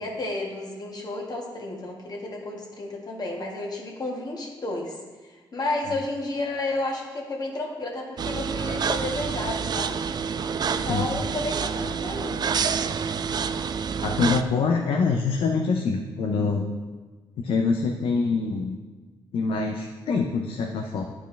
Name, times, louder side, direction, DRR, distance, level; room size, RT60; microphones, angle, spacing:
voice 1, 0.0-5.0 5.3-10.0 10.6-12.5, left 2 dB, 45° left, -1 dB, 1.7 m, -32 dB
sound 1, 8.2-14.4, right 6 dB, 45° right, 0.4 m, -28 dB
voice 2, 14.0-16.7 17.4-18.8 19.3-21.1, left 4 dB, 65° left, 2 dB, 0.6 m, -25 dB
10.5 x 4.4 x 3.3 m, 1.3 s
supercardioid pair, 65°, 10 cm